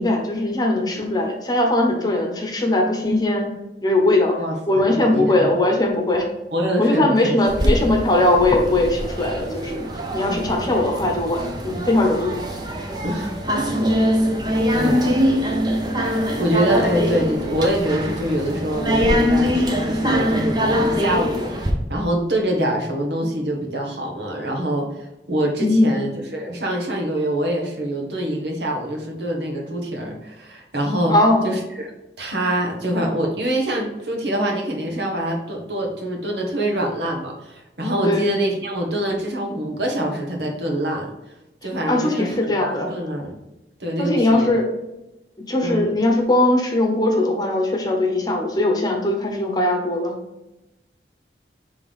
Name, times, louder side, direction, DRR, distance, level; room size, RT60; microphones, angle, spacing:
voice 1, 0.0-3.5 3.8-6.3 6.8-9.9 10.1-12.4 25.6-26.0 31.1-31.5 38.0-38.3 41.9-42.9 44.0-44.6 45.5-50.1, left 1 dB, 20° left, 1 dB, 1.0 m, -20 dB
voice 2, 4.4-5.6 6.5-7.8 13.0-13.8 14.7-15.2 16.4-31.1 31.4-31.9 32.2-41.1 41.6-43.4 43.8-44.5 45.6-45.9, right 1 dB, 75° right, 1 dB, 1.4 m, -25 dB
sound 1, 7.5-21.7, equal, 25° right, 0.7 m, -23 dB
5.3 x 3.5 x 5.5 m, 0.95 s
head